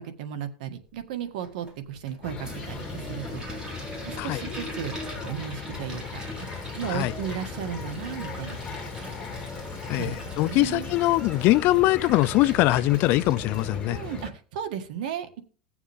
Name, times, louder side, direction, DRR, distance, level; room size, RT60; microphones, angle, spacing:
voice 1, 0.0-3.4 4.1-4.9 5.2-6.2 6.5-8.6 9.0-9.1 9.9-10.9 13.9-15.4, right 9 dB, 75° right, 1.7 m, -35 dB
Toilet flush, 1.4-14.1, right 1 dB, 20° right, 3.7 m, -43 dB
sound 1, 2.2-14.3, left 4 dB, 20° left, 2.9 m, -37 dB
voice 2, 9.9-14.0, left 17 dB, 50° left, 0.5 m, -22 dB
18.0 x 7.2 x 3.5 m
supercardioid pair, 140°, 5 cm